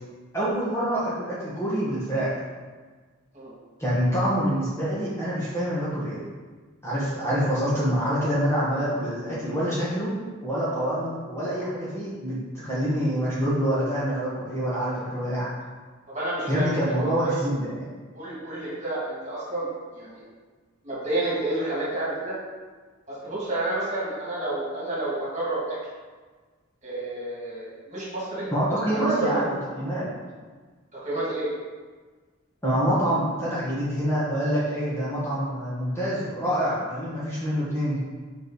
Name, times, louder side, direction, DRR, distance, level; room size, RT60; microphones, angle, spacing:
voice 1, 0.3-2.4 3.8-6.2 6.8-10.1 10.4-15.5 16.5-17.9 28.5-30.1 32.6-38.0, equal, 15° left, -9 dB, 1.7 m, -26 dB
voice 2, 16.1-17.1 18.1-20.2 20.8-22.4 23.1-25.8 26.8-28.5 28.9-29.5 30.9-31.5, right 2 dB, 35° right, -7 dB, 2.2 m, -30 dB
6.2 x 4.7 x 4.9 m, 1.4 s
head